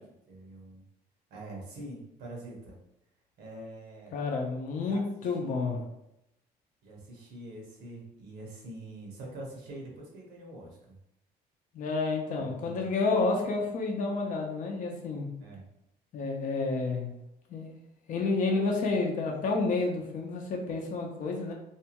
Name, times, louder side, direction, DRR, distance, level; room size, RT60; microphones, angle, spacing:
voice 1, 0.3-0.8 1.3-2.8 3.4-4.1 4.8-5.7 6.8-10.9 12.3-12.9 15.4-15.7, right 1 dB, 80° right, -1 dB, 1.0 m, -45 dB
voice 2, 4.1-5.8 11.7-15.3 16.1-17.1 17.5-17.8 18.1-21.5, left 3 dB, 50° left, 1 dB, 0.6 m, -30 dB
2.7 x 2.2 x 2.9 m, 0.83 s
cardioid pair, 110°, 17 cm